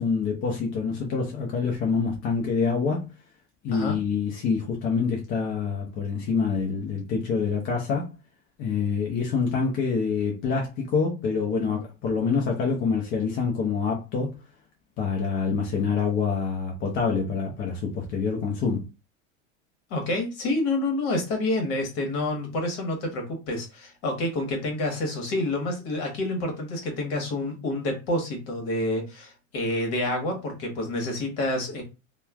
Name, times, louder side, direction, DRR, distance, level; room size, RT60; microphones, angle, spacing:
voice 1, 0.0-3.1 3.6-8.1 8.6-14.3 15.0-18.8, left 5 dB, 30° left, 0.5 m, -26 dB
voice 2, 19.9-31.8, left 1 dB, 55° left, 1.3 m, -28 dB
3.0 x 2.2 x 2.3 m
supercardioid pair, 130°, 39 cm